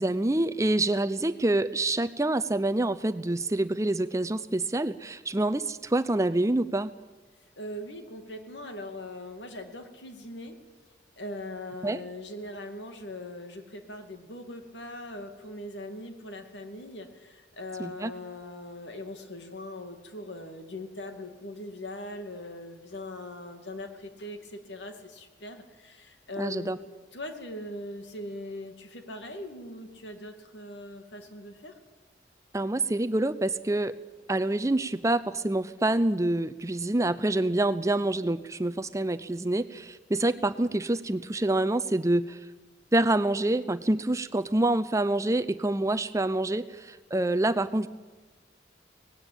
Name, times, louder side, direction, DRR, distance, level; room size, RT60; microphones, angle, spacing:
voice 1, 0.0-6.9 11.8-12.0 17.8-18.1 26.4-26.8 32.5-33.9 34.3-42.4 42.9-47.9, right 2 dB, 15° right, 11 dB, 0.6 m, -26 dB
voice 2, 7.6-10.5 11.2-26.7 27.1-31.7, left 1 dB, 75° left, 6 dB, 2.3 m, -40 dB
19.0 x 16.5 x 8.7 m, 1.2 s
head